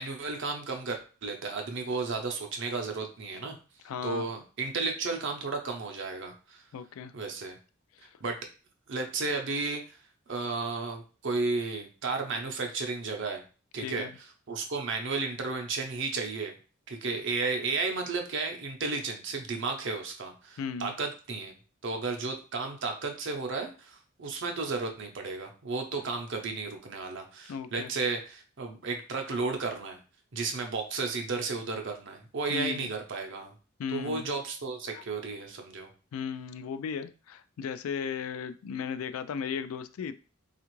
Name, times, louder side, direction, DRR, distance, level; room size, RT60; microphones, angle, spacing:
voice 1, 0.0-3.5 4.0-6.6 7.1-7.6 8.2-8.4 8.9-10.0 10.3-13.4 13.7-14.1 14.5-16.6 16.9-21.5 21.8-30.0 30.3-33.5 33.9-35.9, right 4 dB, 60° right, 4 dB, 0.6 m, -33 dB
voice 2, 3.8-4.3 6.7-7.1 8.0-8.1 13.8-14.1 20.6-20.9 26.0-26.1 27.5-27.9 32.5-32.9 33.8-34.2 34.9-35.0 36.1-40.1, left 6 dB, 85° left, 12 dB, 0.3 m, -36 dB
3.4 x 2.4 x 3.0 m, 0.35 s
head